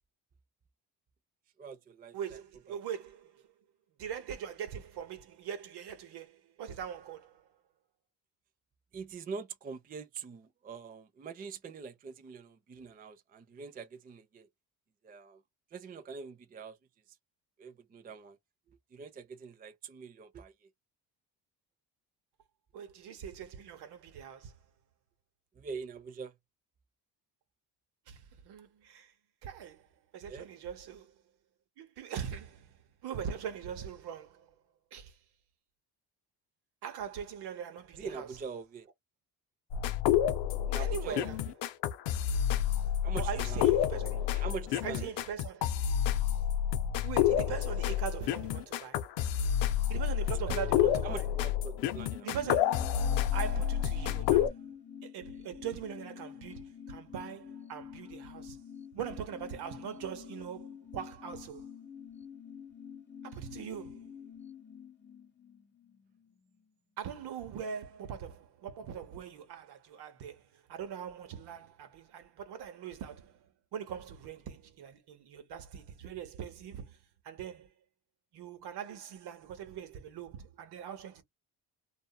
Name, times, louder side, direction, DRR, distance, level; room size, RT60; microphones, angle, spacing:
voice 1, 1.6-2.4 2.7-2.8 8.9-14.5 15.0-15.4 15.7-16.8 17.6-18.4 18.9-20.7 25.6-26.3 30.3-30.5 38.0-38.9 40.7-41.3 43.0-43.6 44.3-45.0 50.3-50.7 51.0-52.6, right 5 dB, 20° right, 0.4 m, -43 dB
voice 2, 2.1-3.5 4.0-7.5 22.7-24.5 28.1-29.1 29.4-31.2 31.8-34.6 34.9-35.2 36.8-38.3 40.8-41.4 43.1-44.4 44.8-45.8 47.0-49.2 49.9-51.3 52.2-54.6 55.0-58.6 58.9-61.7 63.2-64.3 67.0-73.5 73.7-77.0 77.2-77.7 78.3-81.2, right 8 dB, 65° right, 1.0 m, -41 dB
sound 1, 39.7-54.5, left 10 dB, 85° left, 0.6 m, -29 dB
sound 2, 51.6-66.7 67.0-67.1, left 8 dB, 25° left, 1.0 m, -48 dB
2.6 x 2.3 x 2.3 m
supercardioid pair, 80°, 42 cm